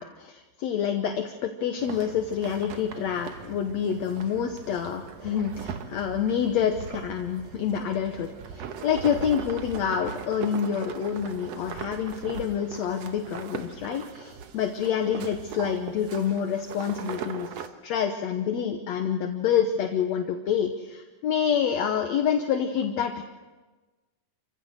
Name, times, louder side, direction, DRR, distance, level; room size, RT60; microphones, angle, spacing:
voice 1, 0.0-23.2, left 8 dB, 65° left, 5 dB, 1.9 m, -27 dB
sound 1, 1.8-17.7, right 7 dB, 65° right, 1.7 m, -39 dB
28.5 x 16.0 x 6.6 m, 1.2 s
omnidirectional pair, 4.2 m